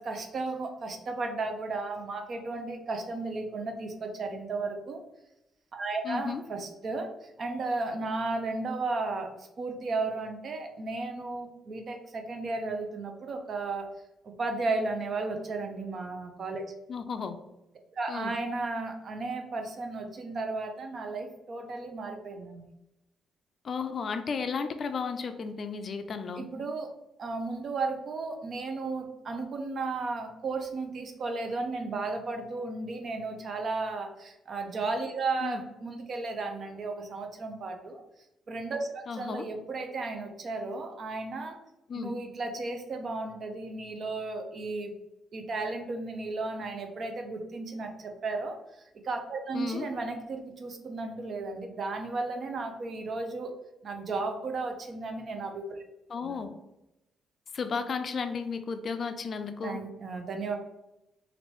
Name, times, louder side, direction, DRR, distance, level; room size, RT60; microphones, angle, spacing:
voice 1, 0.0-5.0 5.7-13.9 14.2-16.7 18.0-22.7 26.4-26.9 27.2-38.0 38.5-41.6 42.0-44.9 45.3-53.5 53.8-55.8 56.2-56.5 59.6-60.6, right 3 dB, 50° right, 5 dB, 0.5 m, -34 dB
voice 2, 6.0-6.4 16.9-17.3 18.1-18.3 23.6-26.4 35.4-35.6 39.1-39.4 41.9-42.1 49.5-49.9 56.1-56.5 57.5-59.8, left 5 dB, 50° left, 8 dB, 0.3 m, -33 dB
2.9 x 2.6 x 3.1 m, 0.92 s
cardioid pair, 90°, 0 cm